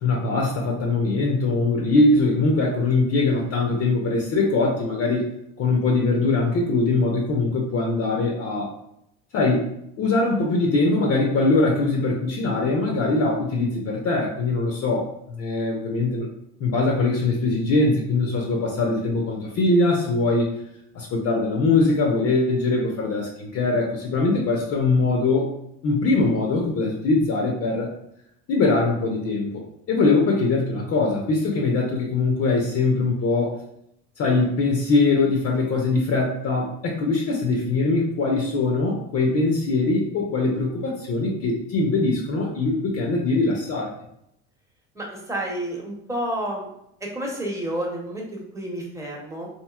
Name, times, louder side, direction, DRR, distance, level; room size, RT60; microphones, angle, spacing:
voice 1, 0.0-5.3 5.6-8.7 9.3-9.7 10.0-16.3 16.6-20.5 20.9-25.5 25.8-27.9 28.5-33.5 34.2-43.9, left 3 dB, 50° left, 0 dB, 0.6 m, -22 dB
voice 2, 44.9-46.7 47.0-49.5, right 1 dB, 10° right, -2 dB, 0.9 m, -30 dB
2.9 x 2.6 x 2.3 m, 0.76 s
supercardioid pair, 90°, 33 cm